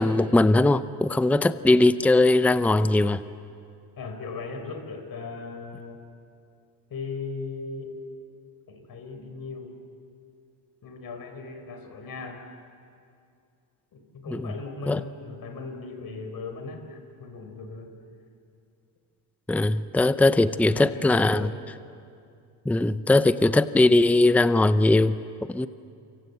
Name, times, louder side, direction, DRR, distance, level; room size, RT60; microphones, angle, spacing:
voice 1, 0.0-3.2 14.3-14.5 14.9-15.0 19.5-21.5 22.7-25.2 25.5-25.7, left 2 dB, 5° left, 13 dB, 0.6 m, -20 dB
voice 2, 4.0-6.0 6.9-7.9 8.7-9.7 10.8-12.4 13.9-17.9 20.6-21.6, left 4 dB, 55° left, 6 dB, 4.4 m, -38 dB
28.0 x 26.0 x 8.1 m, 2.4 s
cardioid pair, 100°, 42 cm